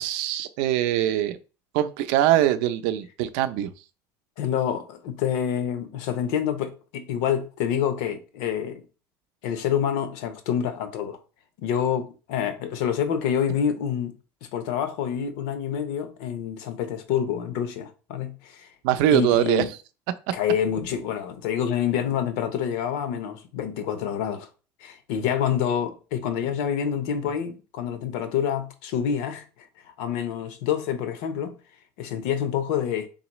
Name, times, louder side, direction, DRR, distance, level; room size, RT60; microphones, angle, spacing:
voice 1, 0.0-1.4 1.7-3.7 18.8-19.6, right 12 dB, 70° right, 0.5 m, -22 dB
voice 2, 4.4-8.8 9.4-11.2 11.6-14.1 14.4-18.7 19.1-19.7 20.3-24.5 24.8-31.6 32.0-33.1, left 8 dB, 80° left, 0.8 m, -27 dB
4.0 x 3.9 x 3.0 m
cardioid pair, 170°, 8 cm